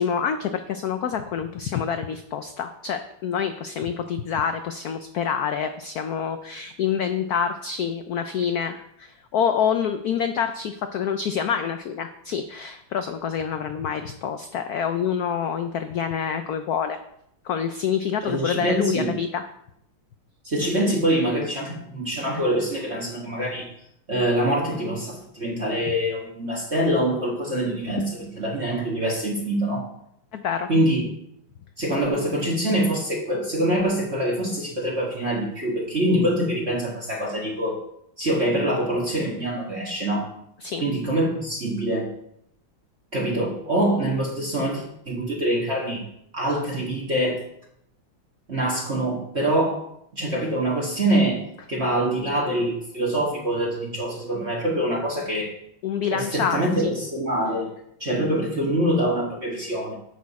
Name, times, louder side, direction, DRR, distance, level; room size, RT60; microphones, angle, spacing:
voice 1, 0.0-17.0 17.4-19.4 27.9-28.0 30.3-30.7 40.6-40.8 55.8-56.9, left 7 dB, 90° left, 8 dB, 0.8 m, -27 dB
voice 2, 18.2-19.1 20.4-23.7 24.1-29.9 30.7-31.1 31.8-37.8 38.2-40.3 40.8-42.1 43.1-46.1 46.3-47.4 48.5-49.8 50.1-51.4 51.7-55.5 56.1-57.7 58.0-59.9, right 1 dB, 35° right, -3 dB, 1.7 m, -24 dB
10.5 x 6.4 x 4.1 m, 0.75 s
omnidirectional pair, 2.3 m